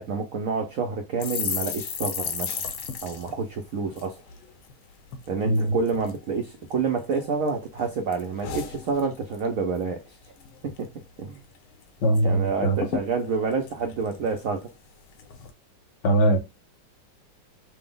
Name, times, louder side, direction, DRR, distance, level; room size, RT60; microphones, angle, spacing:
voice 1, 0.0-2.6 3.0-4.2 5.3-10.2 10.6-10.9 11.2-11.4 12.2-14.7, right 5 dB, 85° right, 0.7 m, -28 dB
sound 1, 1.2-4.7 5.1-5.3 5.5-6.2 6.7-7.5 7.8-9.5 9.8-10.0 10.2-10.8 11.2-11.3 11.5-12.2 12.5-12.6 12.8-14.7 15.2-15.5, left 7 dB, 90° left, 1.6 m, -35 dB
voice 2, 5.4-5.8 12.0-12.7 16.0-16.4, right 1 dB, 60° left, 1.7 m, -21 dB
5.9 x 2.0 x 3.7 m
omnidirectional pair, 2.2 m